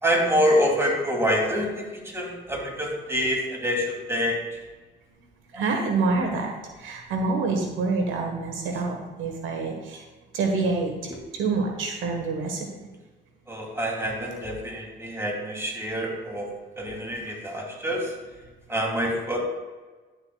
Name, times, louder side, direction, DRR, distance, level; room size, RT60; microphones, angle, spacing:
voice 1, 0.0-4.6 5.5-5.6 11.1-11.2 13.5-18.1 18.7-19.4, equal, 15° right, -2 dB, 2.5 m, -26 dB
voice 2, 5.5-6.5 6.8-10.0 10.3-12.9, right 3 dB, 85° right, 2 dB, 1.3 m, -27 dB
11.0 x 6.8 x 2.3 m, 1.3 s
cardioid pair, 90°, 20 cm